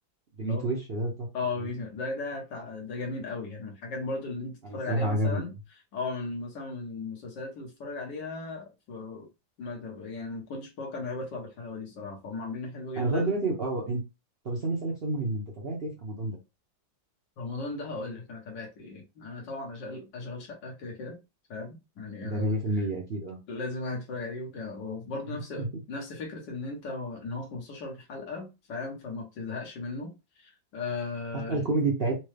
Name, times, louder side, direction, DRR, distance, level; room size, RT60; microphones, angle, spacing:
voice 1, 0.4-1.3 4.6-5.5 13.0-14.0 14.4-16.4 22.2-23.4 31.5-32.1, right 2 dB, 55° right, 0.6 m, -29 dB
voice 2, 1.3-5.5 5.9-9.3 9.6-13.3 17.4-21.2 21.5-22.9 23.5-30.1 30.4-31.6, left 3 dB, 65° left, 1.8 m, -37 dB
4.3 x 2.3 x 3.3 m
omnidirectional pair, 2.1 m